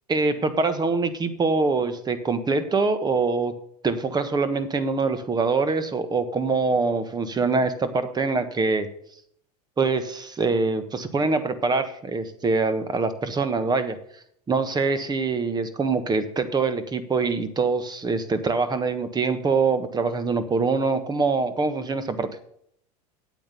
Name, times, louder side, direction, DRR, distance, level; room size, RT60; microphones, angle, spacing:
voice 1, 0.1-3.5 3.8-8.9 9.8-14.0 14.5-22.3, right 4 dB, 20° right, 11 dB, 1.4 m, -24 dB
8.6 x 8.3 x 6.9 m, 0.68 s
hypercardioid pair, 90°, 20 cm